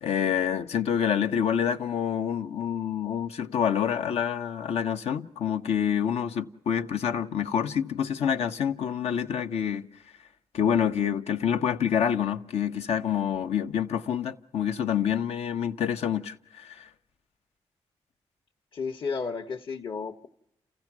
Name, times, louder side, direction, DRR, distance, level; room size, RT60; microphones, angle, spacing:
voice 1, 0.0-9.9 10.5-16.9, left 8 dB, 80° left, 0.7 m, -27 dB
voice 2, 18.7-20.3, left 5 dB, 50° left, 0.9 m, -33 dB
28.5 x 15.5 x 6.0 m
cardioid pair, 55°, 11 cm